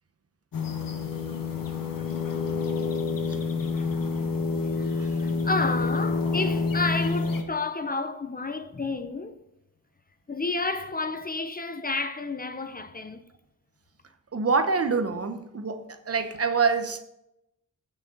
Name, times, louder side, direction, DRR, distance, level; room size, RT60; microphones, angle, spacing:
sound 1, 0.5-7.4, left 4 dB, 85° left, 1.4 m, -28 dB
voice 1, 4.7-9.5 10.3-13.2, left 3 dB, 25° left, 0.6 m, -31 dB
voice 2, 14.3-17.0, right 5 dB, 45° right, 1.0 m, -26 dB
15.5 x 6.5 x 3.9 m
wide cardioid pair, 150°, 33 cm